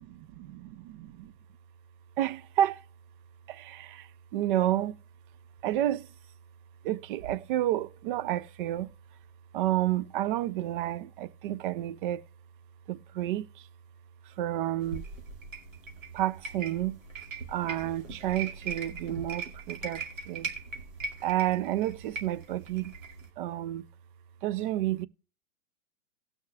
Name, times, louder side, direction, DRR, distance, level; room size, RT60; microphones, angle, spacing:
voice 1, 0.6-1.3 2.2-2.8 3.5-4.1 4.3-4.9 5.6-6.1 6.8-8.9 9.5-12.2 12.9-13.4 14.4-15.0 16.1-17.0 17.5-20.5 21.2-22.9 23.4-23.8 24.4-25.1, right 13 dB, 40° right, 0.6 m, -30 dB
sound 1, 14.8-23.3, right 4 dB, 75° right, 2.3 m, -40 dB
18.5 x 6.4 x 2.3 m
hypercardioid pair, 115°, 39 cm